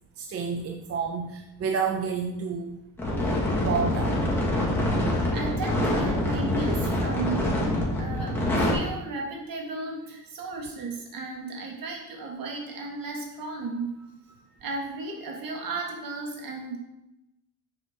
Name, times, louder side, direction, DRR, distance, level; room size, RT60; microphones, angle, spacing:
voice 1, 0.2-2.8 3.6-4.1, right 5 dB, 40° right, 3 dB, 0.5 m, -29 dB
sound 1, 3.0-8.7, left 1 dB, 5° left, 1.4 m, -25 dB
voice 2, 5.3-16.8, right 3 dB, 55° right, 0 dB, 1.6 m, -35 dB
6.6 x 4.4 x 3.5 m, 0.89 s
cardioid pair, 130°, 40 cm